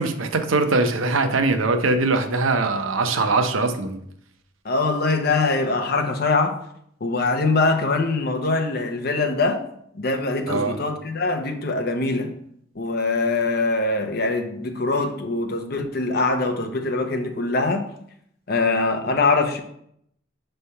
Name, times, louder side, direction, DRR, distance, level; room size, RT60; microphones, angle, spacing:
voice 1, 0.0-3.9 10.5-10.8, right 3 dB, 90° right, 7 dB, 0.7 m, -21 dB
voice 2, 4.6-6.6 7.0-9.6 9.9-12.3 12.7-17.8 18.5-19.6, left 3 dB, 50° left, 4 dB, 0.8 m, -23 dB
5.5 x 3.3 x 5.6 m, 0.70 s
head